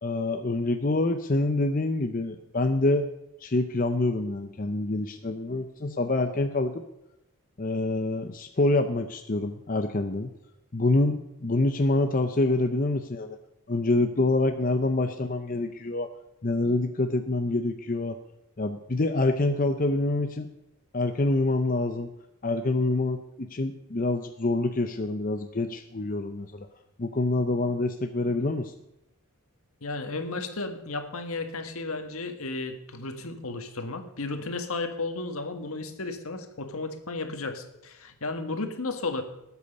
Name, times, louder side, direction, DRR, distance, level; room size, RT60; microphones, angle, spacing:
voice 1, 0.0-3.1 3.4-6.8 7.6-10.3 10.7-13.4 13.7-16.1 16.4-18.2 18.6-20.5 20.9-22.1 22.4-26.7 27.0-28.7, left 2 dB, 40° left, 6 dB, 0.7 m, -26 dB
voice 2, 29.8-39.2, left 3 dB, 75° left, 6 dB, 1.7 m, -33 dB
19.5 x 8.3 x 5.4 m, 0.87 s
head